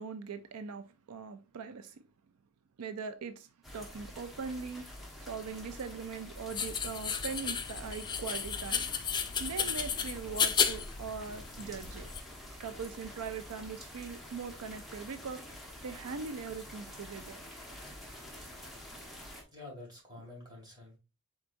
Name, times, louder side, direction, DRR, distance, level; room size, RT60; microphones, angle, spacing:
voice 1, 0.0-2.0 2.8-4.9 5.2-8.9 9.4-12.1 12.6-15.4 15.8-17.4, right 5 dB, 90° right, 0.5 m, -41 dB
sound 1, 3.6-19.4, left 1 dB, ahead, 0.9 m, -48 dB
sound 2, 6.5-12.2, left 7 dB, 20° left, 0.3 m, -33 dB
voice 2, 19.5-21.0, left 2 dB, 20° right, 2.1 m, -48 dB
4.6 x 3.8 x 2.5 m
head